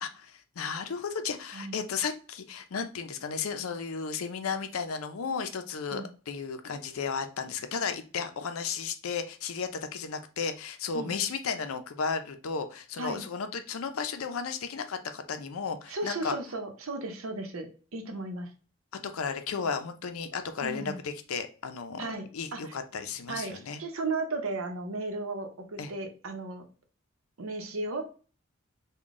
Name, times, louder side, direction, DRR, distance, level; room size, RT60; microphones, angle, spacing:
voice 1, 0.0-16.4 19.1-22.1 22.3-23.8 25.8-25.9, left 5 dB, 90° left, 8 dB, 0.5 m, -34 dB
voice 2, 1.5-1.8 5.9-6.1 10.9-11.1 13.0-13.3 15.9-18.5 20.6-21.0 22.0-22.8 23.3-26.6 27.4-28.0, right 2 dB, 80° right, 5 dB, 0.7 m, -35 dB
3.8 x 2.2 x 3.6 m, 0.37 s
head